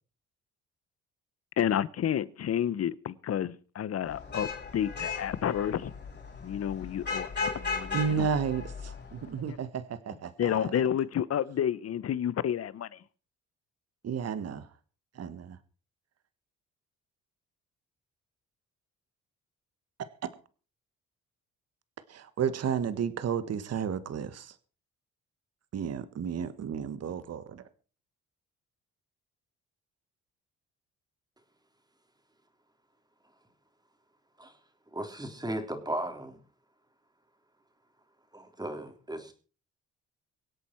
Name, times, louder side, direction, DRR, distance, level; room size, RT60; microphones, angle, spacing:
voice 1, 1.6-4.5 4.7-5.9 6.4-8.3 10.4-12.9, left 9 dB, 55° left, 1.0 m, -30 dB
Vehicle horn car horn honking / Traffic noise roadway noise, 4.1-9.4, left 4 dB, 35° left, 6.3 m, -37 dB
voice 2, 7.9-10.8 14.0-14.7 15.1-15.6 20.0-20.1 22.1-24.5 25.7-27.6, right 7 dB, 55° right, 1.4 m, -32 dB
voice 3, 34.9-36.4 38.3-39.3, right 1 dB, 15° right, 3.6 m, -36 dB
24.0 x 8.3 x 4.6 m
cardioid pair, 90°, 30 cm